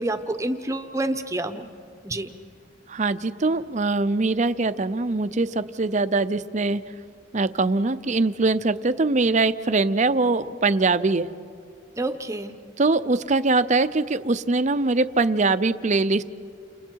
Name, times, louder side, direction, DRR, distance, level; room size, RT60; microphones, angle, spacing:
voice 1, 0.0-1.7 2.0-2.3 12.0-12.5, right 2 dB, 15° right, 7 dB, 0.9 m, -28 dB
voice 2, 2.9-6.8 7.3-11.3 12.8-16.2, right 3 dB, 35° right, 13 dB, 0.6 m, -22 dB
30.0 x 28.0 x 4.6 m, 2.2 s
head